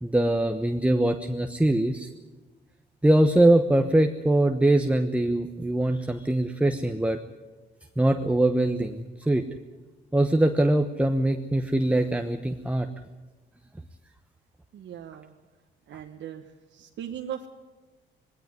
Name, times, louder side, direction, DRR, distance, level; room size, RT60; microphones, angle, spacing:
voice 1, 0.0-2.1 3.0-7.2 8.0-9.4 10.1-12.9, right 1 dB, 5° right, 7 dB, 1.0 m, -22 dB
voice 2, 14.7-15.3 15.9-16.4 17.0-17.5, right 10 dB, 70° right, 3 dB, 1.3 m, -37 dB
19.5 x 17.0 x 9.6 m, 1.2 s
cardioid pair, 90°, 20 cm